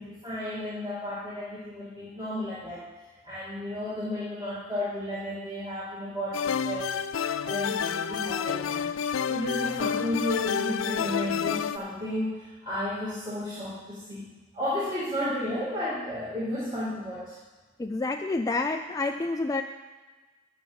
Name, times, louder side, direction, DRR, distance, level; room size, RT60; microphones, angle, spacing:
voice 1, 0.0-2.8 3.2-7.0 7.4-8.9 9.3-14.2 14.5-17.4, left 1 dB, 20° right, -9 dB, 2.4 m, -33 dB
sound 1, 6.3-11.8, left 7 dB, 80° left, 0.4 m, -29 dB
voice 2, 17.8-19.6, left 3 dB, 15° left, 4 dB, 0.4 m, -28 dB
12.5 x 5.0 x 7.9 m, 1.3 s
head